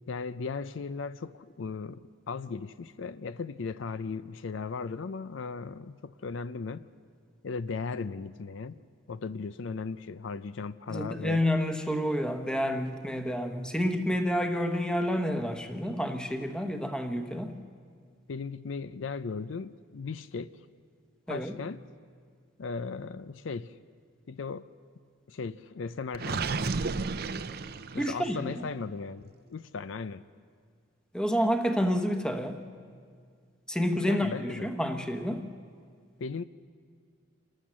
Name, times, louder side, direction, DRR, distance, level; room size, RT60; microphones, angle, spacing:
voice 1, 0.1-6.9 7.4-8.8 9.1-11.4 18.3-20.5 21.3-21.8 22.6-23.8 24.3-24.7 25.3-26.6 27.9-29.2 29.5-30.2 33.9-34.7 36.2-36.4, left 4 dB, 70° left, 14 dB, 0.5 m, -37 dB
voice 2, 10.9-17.5 21.3-21.5 28.0-28.7 31.1-32.6 33.7-35.4, equal, 5° left, 6 dB, 1.0 m, -29 dB
Gurgling, 26.1-28.3, right 4 dB, 50° right, 0.6 m, -32 dB
28.5 x 13.0 x 7.5 m, 2.1 s
head